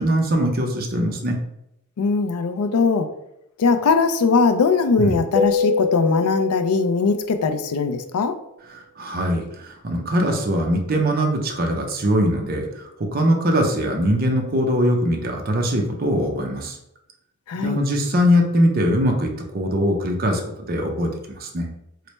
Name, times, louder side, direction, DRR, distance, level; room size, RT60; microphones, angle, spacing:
voice 1, 0.0-1.4 5.0-5.2 8.7-16.8 17.6-20.4 20.7-21.7, equal, 40° right, 2 dB, 0.5 m, -21 dB
voice 2, 2.0-3.1 3.6-8.4 17.5-17.8, left 4 dB, 85° left, 8 dB, 0.4 m, -20 dB
Keyboard (musical), 5.4-7.9, left 5 dB, 5° left, 1.2 m, -25 dB
3.2 x 2.0 x 4.1 m, 0.83 s
head